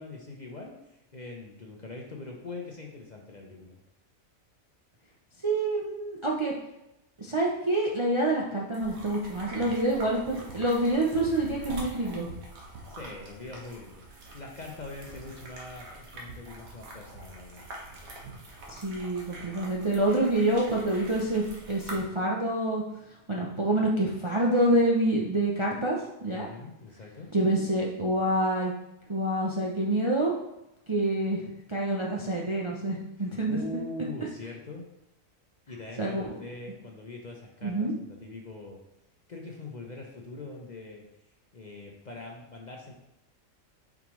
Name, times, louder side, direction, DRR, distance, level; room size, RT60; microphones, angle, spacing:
voice 1, 0.0-3.8 12.6-14.0 14.3-17.6 26.3-27.3 33.2-34.9 35.7-38.8 39.3-41.0 41.5-42.9, left 2 dB, 40° left, 0 dB, 0.7 m, -42 dB
voice 2, 5.4-6.5 7.2-12.3 18.7-22.8 23.3-26.5 27.3-28.7 29.1-30.3 30.9-33.6 36.0-36.3 37.6-37.9, right 1 dB, 30° right, -3 dB, 0.5 m, -27 dB
sound 1, 8.7-22.0, right 2 dB, 85° right, 1.6 m, -44 dB
7.3 x 4.9 x 3.1 m, 0.90 s
omnidirectional pair, 1.4 m